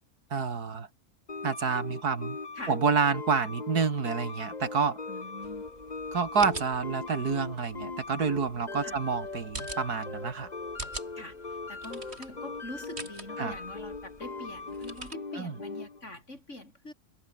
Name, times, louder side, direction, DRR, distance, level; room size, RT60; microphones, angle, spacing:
voice 1, 0.3-0.9 1.4-2.4 2.7-5.0 6.1-10.5 13.4-13.6 15.4-15.5, right 5 dB, 85° right, 2.8 m, -28 dB
sound 1, 1.3-16.0, left 3 dB, 30° left, 1.6 m, -40 dB
voice 2, 5.1-5.6 8.8-9.0 11.2-16.9, left 1 dB, 50° left, 7.1 m, -44 dB
sound 2, 5.4-15.2, right 2 dB, 45° right, 3.9 m, -45 dB
omnidirectional pair, 1.6 m